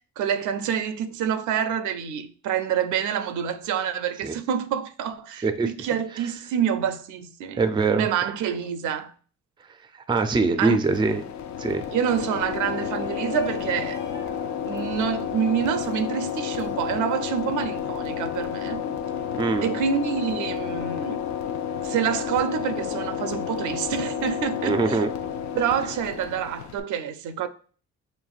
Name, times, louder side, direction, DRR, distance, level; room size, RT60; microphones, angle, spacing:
voice 1, 0.2-7.6 7.9-9.1 10.6-10.8 11.9-14.0 14.6-18.9 19.6-21.3 21.8-25.0 25.6-27.5, right 8 dB, 75° right, 0.5 m, -27 dB
voice 2, 7.6-8.1 9.9-11.2 11.6-11.8 19.4-19.8 24.6-25.1, right 4 dB, 15° right, 0.4 m, -23 dB
sound 1, 10.8-26.8, left 8 dB, 70° left, 0.5 m, -31 dB
Shout, 12.7-17.8, left 4 dB, 35° left, 1.3 m, -45 dB
5.8 x 2.6 x 2.4 m
cardioid pair, 90°, 30 cm